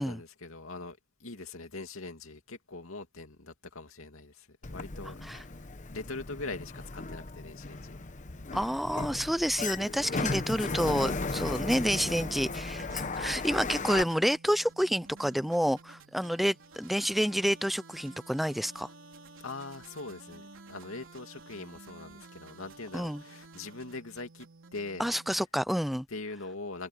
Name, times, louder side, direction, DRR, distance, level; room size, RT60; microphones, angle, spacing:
voice 1, 0.0-8.0 19.4-24.5 24.7-25.1 26.1-26.9, left 3 dB, 85° left, 2.6 m, -42 dB
Sliding door, 4.6-14.0, left 3 dB, 35° left, 1.0 m, -36 dB
voice 2, 8.5-18.9 22.9-23.2 25.0-26.0, equal, ahead, 0.4 m, -29 dB
sound 1, 10.5-25.5, right 3 dB, 70° right, 3.9 m, -52 dB
head